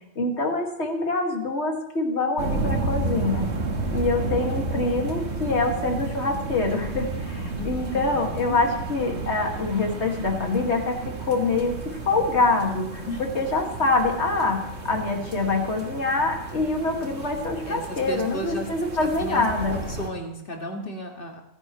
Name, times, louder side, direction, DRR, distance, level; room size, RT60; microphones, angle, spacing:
voice 1, 0.2-3.5 3.9-14.6 14.8-19.7, left 3 dB, 65° left, 2 dB, 2.4 m, -25 dB
sound 1, 2.4-20.1, right 3 dB, 65° right, 1.9 m, -32 dB
voice 2, 7.5-8.6 13.1-13.2 17.7-19.4 19.7-21.4, equal, 50° left, 1 dB, 2.2 m, -35 dB
25.0 x 10.5 x 3.2 m, 0.80 s
omnidirectional pair, 1.2 m